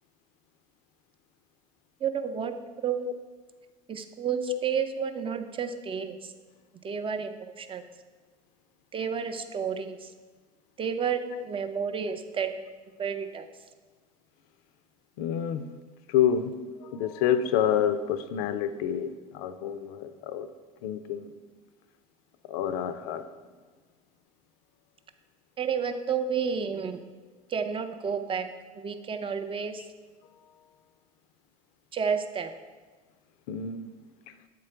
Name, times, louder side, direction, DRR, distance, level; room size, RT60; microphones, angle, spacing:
voice 1, 2.0-2.5 2.8-3.1 3.9-6.3 6.8-7.8 8.9-10.1 10.8-12.5 13.0-13.5 25.6-27.0 27.5-28.5 28.7-29.8 31.9-32.5, right 7 dB, 30° right, 8 dB, 0.6 m, -31 dB
voice 2, 15.2-15.7 16.1-16.5 16.8-20.5 20.8-21.3 22.5-23.2 29.8-29.9 33.5-33.9, left 9 dB, 70° left, 11 dB, 0.5 m, -28 dB
7.7 x 3.8 x 4.4 m, 1.4 s
hypercardioid pair, 75°, 19 cm